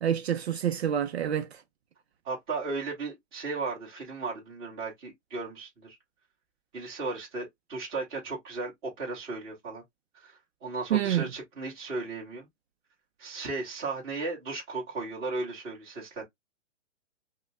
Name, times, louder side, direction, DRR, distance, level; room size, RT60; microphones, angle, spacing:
voice 1, 0.0-1.5 10.9-11.3, right 10 dB, 60° right, 0.6 m, -27 dB
voice 2, 2.2-6.0 6.7-9.8 10.1-12.5 13.2-16.2, right 3 dB, 15° right, 1.4 m, -35 dB
5.5 x 2.2 x 2.3 m
hypercardioid pair, 175°, 36 cm